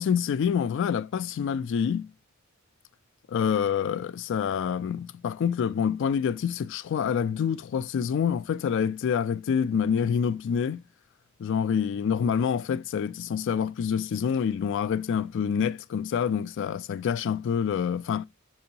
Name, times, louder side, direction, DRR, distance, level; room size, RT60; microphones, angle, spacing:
voice 1, 0.0-2.1 3.3-10.8 11.4-18.3, left 7 dB, 60° left, 0.3 m, -27 dB
6.7 x 2.7 x 2.7 m
head